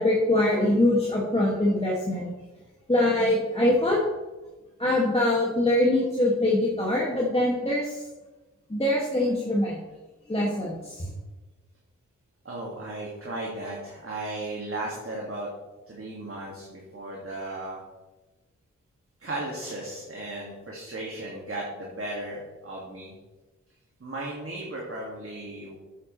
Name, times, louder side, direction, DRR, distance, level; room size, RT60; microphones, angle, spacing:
voice 1, 0.0-2.3 2.9-4.0 4.8-7.9 8.7-9.8 10.3-11.1, left 1 dB, 20° left, -5 dB, 2.1 m, -23 dB
voice 2, 12.4-15.5 15.9-17.8 19.2-23.1 24.0-25.8, right 2 dB, 45° right, -3 dB, 2.2 m, -35 dB
9.6 x 8.3 x 3.3 m, 1.1 s
cardioid pair, 50°, 30 cm